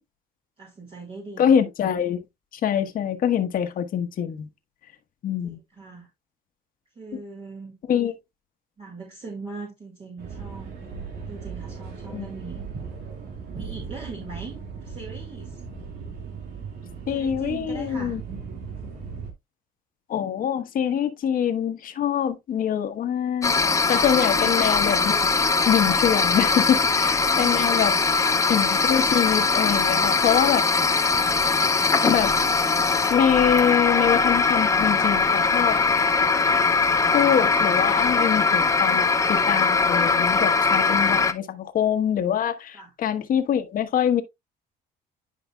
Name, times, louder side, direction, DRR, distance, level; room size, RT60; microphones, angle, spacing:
voice 1, 0.6-1.5 5.4-6.1 6.9-7.7 8.8-12.6 13.5-15.6 17.1-18.2 24.2-24.8 27.3-27.6 42.7-42.9, right 3 dB, 35° right, 2.4 m, -40 dB
voice 2, 1.4-2.2 2.6-4.5 5.2-5.6 7.9-8.1 12.1-12.3 17.1-18.2 20.1-25.3 25.7-27.9 28.5-30.6 32.0-32.3 33.1-35.8 37.1-44.2, left 9 dB, 55° left, 1.2 m, -24 dB
sound 1, 10.2-19.3, right 5 dB, 85° right, 2.2 m, -37 dB
sound 2, 23.4-41.3, left 4 dB, 20° left, 0.6 m, -21 dB
10.5 x 5.1 x 2.3 m
cardioid pair, 110°, 17 cm